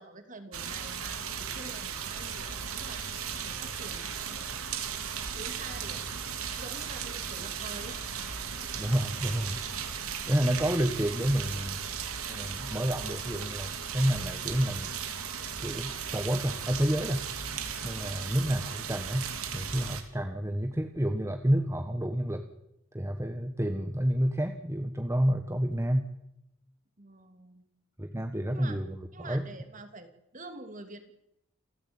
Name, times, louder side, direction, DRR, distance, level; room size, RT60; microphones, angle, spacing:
voice 1, 0.0-3.1 3.4-4.8 5.3-6.0 6.5-8.0 27.0-27.6 28.5-28.8 29.1-31.1, right 2 dB, 35° right, 7 dB, 2.8 m, -47 dB
sound 1, 0.5-20.0, right 7 dB, 90° right, 3.1 m, -36 dB
voice 2, 8.7-9.7 10.3-11.8 12.3-14.9 15.6-17.3 17.8-22.4 22.9-26.1 28.0-29.4, equal, 15° right, 5 dB, 1.4 m, -29 dB
28.5 x 15.0 x 8.9 m, 0.85 s
head